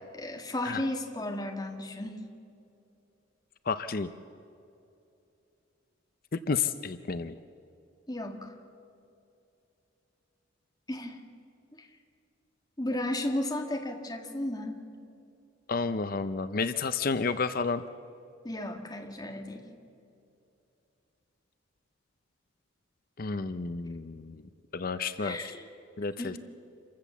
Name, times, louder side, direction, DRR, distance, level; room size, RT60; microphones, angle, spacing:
voice 1, 0.1-2.2 8.1-8.5 10.9-11.2 11.8-11.9 12.8-14.8 18.4-19.7 25.2-25.7 26.2-26.4, left 1 dB, 20° left, 3 dB, 1.8 m, -34 dB
voice 2, 3.7-4.1 6.3-7.4 15.7-17.8 23.2-24.4 24.7-25.4 26.0-26.4, left 4 dB, 45° left, 12 dB, 0.5 m, -31 dB
27.0 x 15.0 x 7.3 m, 2.7 s
head